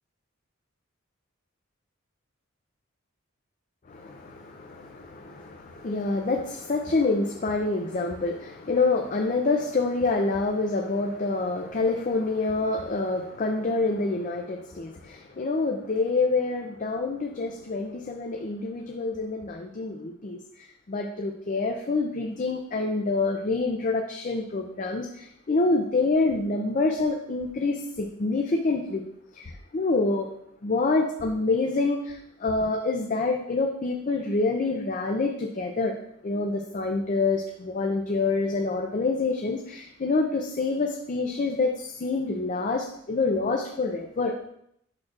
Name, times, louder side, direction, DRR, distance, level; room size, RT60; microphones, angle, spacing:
voice 1, 3.9-20.4 20.9-29.0 29.3-30.3 30.6-36.0 36.2-44.4, left 3 dB, 40° left, 2 dB, 0.5 m, -27 dB
8.6 x 6.1 x 2.5 m, 0.73 s
head